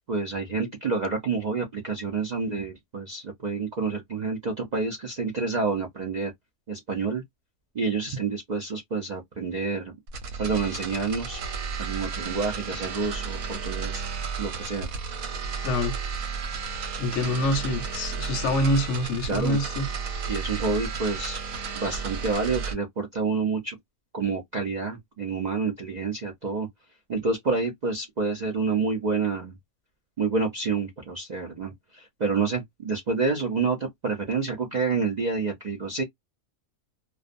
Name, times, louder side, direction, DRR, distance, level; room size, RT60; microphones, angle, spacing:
voice 1, 0.1-6.3 6.7-7.2 7.7-9.9 10.4-11.4 11.8-14.0 14.4-14.9 19.3-19.6 20.3-21.4 21.7-23.8 24.1-26.7 27.1-29.5 30.2-36.0, right 4 dB, 55° right, 0.5 m, -28 dB
sound 1, 10.1-22.7, right 5 dB, 85° right, 1.2 m, -33 dB
voice 2, 15.6-16.0 17.0-19.9, left 1 dB, 70° left, 0.8 m, -26 dB
2.4 x 2.1 x 2.5 m
omnidirectional pair, 1.4 m